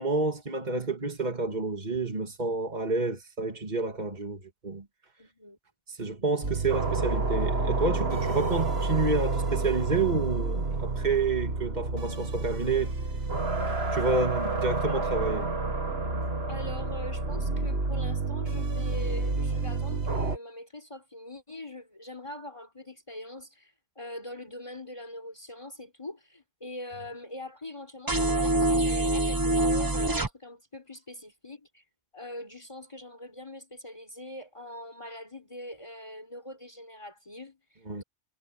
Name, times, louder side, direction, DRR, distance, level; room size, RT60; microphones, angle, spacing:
voice 1, 0.0-4.8 5.9-12.9 13.7-15.6 37.9-38.0, right 3 dB, 40° right, 2.8 m, -29 dB
voice 2, 5.2-5.6 16.5-31.8 32.1-38.0, left 1 dB, 25° left, 4.3 m, -43 dB
sound 1, 6.4-20.4, right 3 dB, 65° right, 2.5 m, -29 dB
sound 2, 28.1-30.3, right 1 dB, 20° right, 1.0 m, -25 dB
omnidirectional pair, 1.2 m